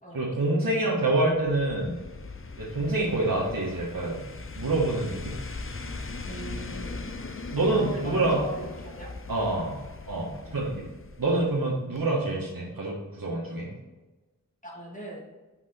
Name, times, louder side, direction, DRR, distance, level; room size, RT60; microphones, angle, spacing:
voice 1, 0.1-2.0 2.6-4.2 4.6-5.4 7.5-8.4 9.3-9.8 10.1-10.8 11.2-13.7, right 2 dB, 90° right, -6 dB, 1.6 m, -26 dB
sound 1, 1.3-11.7 11.9-12.0, left 3 dB, 40° left, 0.7 m, -40 dB
voice 2, 6.2-7.0 7.7-9.1 10.3-10.7 14.6-15.2, right 1 dB, 25° left, -3 dB, 2.5 m, -39 dB
6.0 x 5.6 x 4.4 m, 1.2 s
wide cardioid pair, 55°, 34 cm